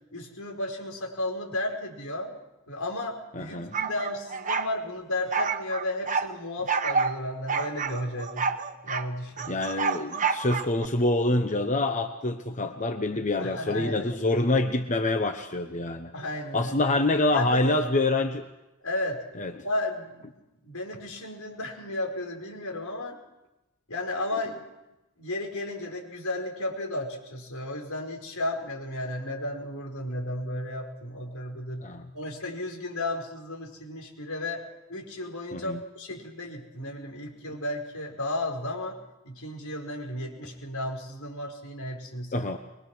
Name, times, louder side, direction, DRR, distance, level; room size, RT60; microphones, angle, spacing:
voice 1, 0.1-2.3 2.7-8.5 8.8-9.5 13.4-14.1 16.1-17.0 17.3-17.8 18.8-19.2 19.6-23.2 23.9-24.6 25.2-34.6 34.9-39.0 39.2-42.5, left 1 dB, 85° left, 1 dB, 5.2 m, -34 dB
voice 2, 3.3-3.7 9.5-16.1 16.5-18.5 19.4-19.5 31.8-32.1 35.5-35.8 42.3-42.6, left 2 dB, 35° left, 7 dB, 1.1 m, -26 dB
sound 1, 3.7-4.7 5.3-6.3 6.7-7.2 7.5-9.1 9.4-10.9, right 5 dB, 35° right, 1.1 m, -28 dB
24.0 x 22.5 x 6.2 m, 0.97 s
head